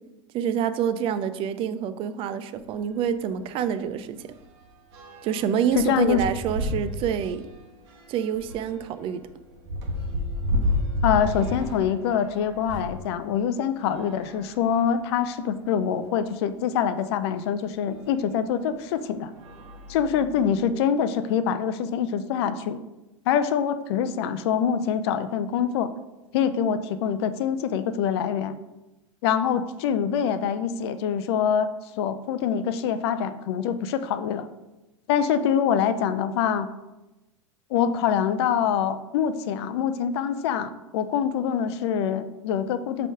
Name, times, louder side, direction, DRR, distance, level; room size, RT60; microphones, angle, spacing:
voice 1, 0.3-4.3 5.2-7.4 8.1-9.2, right 8 dB, 35° right, 11 dB, 0.5 m, -27 dB
sound 1, 2.6-2.7 3.1-3.3 3.6-13.0 13.8-15.1 15.8-15.9 16.1-16.2 17.9-18.0 18.7-19.0 19.3-20.6, left 1 dB, 50° right, 1.3 m, -32 dB
voice 2, 5.8-6.2 11.0-19.3 19.9-22.8 23.3-25.9 26.3-28.5 29.2-31.7 32.0-34.4 35.1-36.7 37.7-43.1, left 8 dB, 50° left, 11 dB, 0.5 m, -25 dB
7.5 x 3.4 x 4.9 m, 1.0 s
figure-of-eight pair, 90°, 17 cm